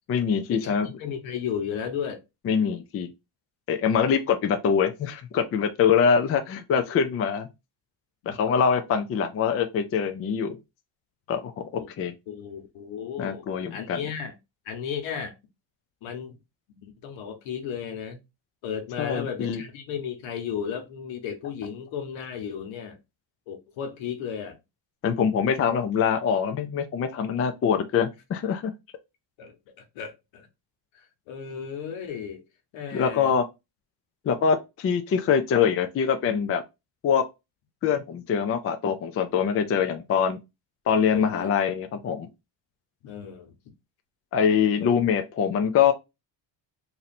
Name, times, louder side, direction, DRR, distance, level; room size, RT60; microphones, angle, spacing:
voice 1, 0.1-0.9 2.4-3.1 3.7-7.5 8.3-10.6 11.3-12.1 13.2-14.0 19.0-19.6 25.0-28.7 32.9-33.4 34.2-36.6 37.0-37.2 37.8-40.4 40.9-42.3 44.3-45.9, left 7 dB, 30° left, 0.4 m, -24 dB
voice 2, 1.0-2.2 8.2-8.4 11.8-11.9 12.3-14.3 14.6-15.3 16.0-16.4 16.8-18.2 18.6-23.0 23.5-24.6 29.4-29.5 29.9-30.5 30.9-32.4 32.7-33.3 41.1-41.5 43.0-43.5 44.8-44.9, left 7 dB, 80° left, 1.2 m, -34 dB
3.1 x 2.7 x 4.1 m
cardioid pair, 145°, 46 cm